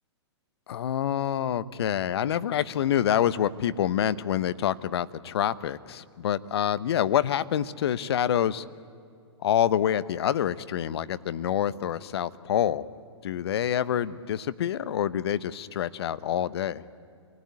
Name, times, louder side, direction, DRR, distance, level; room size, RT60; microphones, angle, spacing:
voice 1, 0.7-8.6 9.4-12.8 13.2-16.8, left 10 dB, 60° left, 15 dB, 0.9 m, -27 dB
26.5 x 20.0 x 9.6 m, 2.3 s
hypercardioid pair, 120°, 15 cm